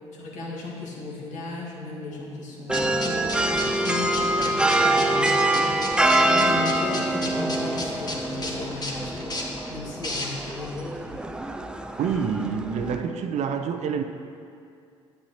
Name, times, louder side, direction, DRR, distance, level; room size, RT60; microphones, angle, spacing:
voice 1, 0.1-11.3, left 3 dB, 60° left, -4 dB, 1.8 m, -36 dB
sound 1, 2.7-10.6, left 1 dB, 30° left, 1.6 m, -34 dB
sound 2, 2.7-13.0, right 1 dB, 5° right, 0.5 m, -25 dB
voice 2, 12.0-14.0, right 6 dB, 55° right, 6 dB, 0.6 m, -27 dB
9.8 x 8.1 x 2.9 m, 2.4 s
hypercardioid pair, 55°, 14 cm